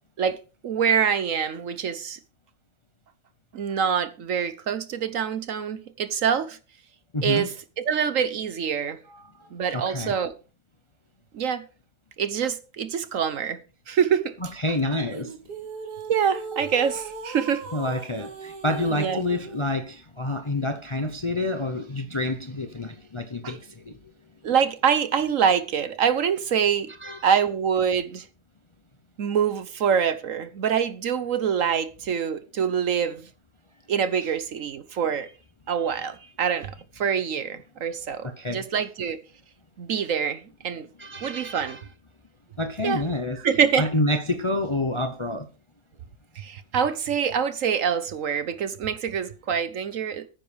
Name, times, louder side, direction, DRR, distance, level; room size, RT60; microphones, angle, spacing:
voice 1, 0.6-2.2 3.5-6.6 7.2-9.0 9.5-10.3 11.3-11.6 12.2-13.6 13.9-14.3 16.1-17.7 19.0-19.2 23.4-23.5 24.4-26.9 27.2-28.3 29.2-33.3 33.9-35.3 35.7-39.2 39.8-40.9 41.2-41.8 42.8-43.0 43.4-43.9 46.4-50.3, right 7 dB, 60° right, 1.1 m, -25 dB
voice 2, 7.1-7.5 9.1-10.1 14.4-15.3 17.7-24.0 27.0-27.2 34.2-34.3 35.9-36.3 38.2-38.7 41.0-41.8 42.6-43.4 43.8-45.5, left 2 dB, 25° left, 0.6 m, -28 dB
sound 1, 15.1-19.7, right 4 dB, 80° right, 2.0 m, -38 dB
14.5 x 9.6 x 3.4 m
omnidirectional pair, 1.7 m